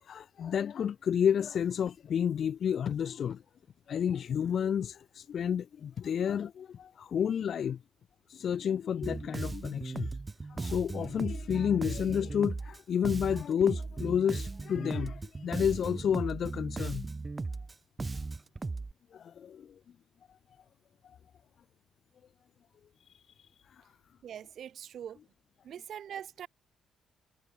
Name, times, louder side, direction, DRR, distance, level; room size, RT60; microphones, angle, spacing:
voice 1, 0.0-3.4 3.9-7.8 8.3-10.2 10.5-17.1 19.1-19.7 23.1-23.2 23.7-23.8, left 8 dB, 60° left, 2.2 m, -30 dB
Bass guitar, 9.0-18.9, right 3 dB, 25° right, 4.3 m, -37 dB
voice 2, 24.2-25.2 25.6-26.5, right 9 dB, 65° right, 3.1 m, -42 dB
cardioid pair, 90°, 0 cm